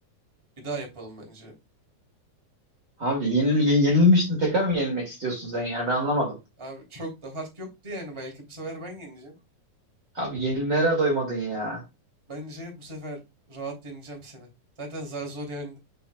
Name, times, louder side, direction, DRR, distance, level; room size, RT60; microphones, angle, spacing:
voice 1, 0.6-1.5 6.6-9.4 12.3-13.2 13.5-14.5 14.8-15.8, right 2 dB, 10° right, 2.3 m, -37 dB
voice 2, 3.0-6.4 10.1-11.8, equal, 35° right, 2.4 m, -23 dB
6.8 x 6.6 x 2.2 m
omnidirectional pair, 3.6 m